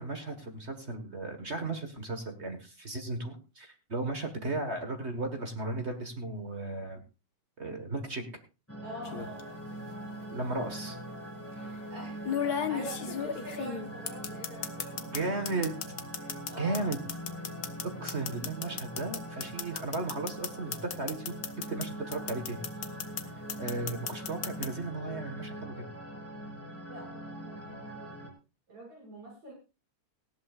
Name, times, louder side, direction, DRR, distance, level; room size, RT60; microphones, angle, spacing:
voice 1, 0.0-7.0 7.6-8.2 10.3-11.0 15.0-15.8 16.6-17.0 17.8-21.4 21.7-22.6 23.6-25.9, right 2 dB, 35° right, 6 dB, 1.1 m, -35 dB
sound 1, 8.7-28.3, right 1 dB, 5° left, 3.7 m, -42 dB
voice 2, 8.8-9.6 11.5-15.3 16.2-16.9 26.9-28.2 28.7-29.5, right 1 dB, 70° right, -1 dB, 8.0 m, -45 dB
sound 2, 9.0-9.4 10.6-10.7 12.2-15.2 15.4-21.8 22.1-23.2 23.5-24.7, left 7 dB, 55° left, 1.1 m, -34 dB
19.0 x 14.5 x 2.4 m, 0.30 s
omnidirectional pair, 3.3 m